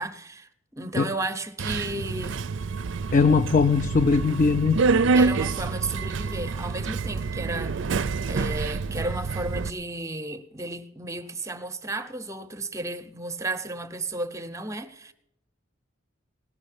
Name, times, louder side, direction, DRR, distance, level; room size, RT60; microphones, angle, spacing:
voice 1, 0.0-2.4 5.1-7.9 8.3-15.1, right 2 dB, 15° right, 0.8 m, -33 dB
Subway metro underground, 1.6-9.7, right 4 dB, 65° right, 0.5 m, -27 dB
voice 2, 3.1-4.8, left 4 dB, 40° left, 0.4 m, -20 dB
17.5 x 6.4 x 9.9 m
head